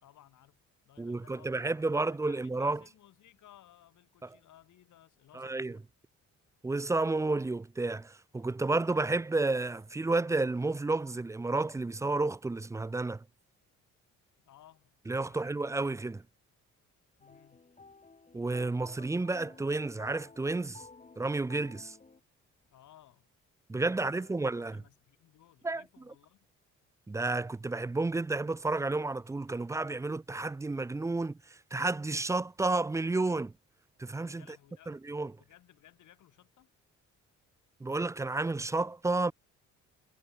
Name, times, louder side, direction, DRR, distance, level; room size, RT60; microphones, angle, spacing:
voice 1, 0.0-5.9 14.4-15.0 15.2-15.4 17.2-17.7 22.6-23.3 23.8-26.5 34.3-35.0 35.3-36.7, left 12 dB, 75° left, 3.9 m, -60 dB
voice 2, 1.0-2.8 5.3-5.7 6.6-13.2 15.1-16.2 18.3-20.8 21.2-22.0 23.7-24.8 25.6-25.8 27.1-33.5 34.0-34.4 34.9-35.3 37.8-39.3, right 3 dB, 10° right, 0.4 m, -31 dB
sound 1, 17.2-22.2, left 3 dB, 25° left, 4.3 m, -54 dB
cardioid pair, 90°, 30 cm